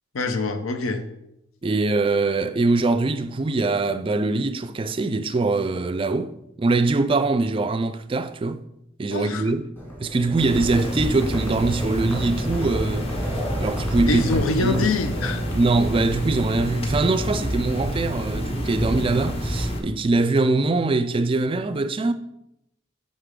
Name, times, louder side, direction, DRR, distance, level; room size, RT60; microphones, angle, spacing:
voice 1, 0.1-1.1 9.1-9.5 14.1-15.4, left 3 dB, 85° left, 0.7 m, -25 dB
voice 2, 1.6-8.6 9.0-9.7 10.0-13.1 13.6-14.9 15.5-22.1, right 3 dB, 25° right, 0.3 m, -23 dB
Livestock farm animals working animals, 9.8-15.5, equal, 10° left, 1.5 m, -36 dB
sound 1, 10.4-19.8, equal, 30° left, 0.8 m, -27 dB
6.7 x 5.4 x 3.7 m
head